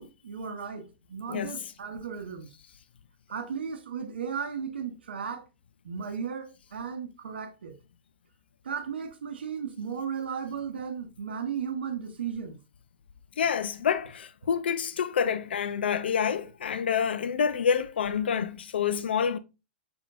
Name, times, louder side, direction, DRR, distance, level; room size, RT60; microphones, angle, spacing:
voice 1, 0.0-2.5 3.3-5.4 5.8-7.7 8.6-12.6, right 7 dB, 80° right, 0.7 m, -35 dB
voice 2, 13.4-19.4, left 7 dB, 80° left, 0.4 m, -27 dB
5.8 x 3.5 x 2.4 m
hypercardioid pair, 110°, 6 cm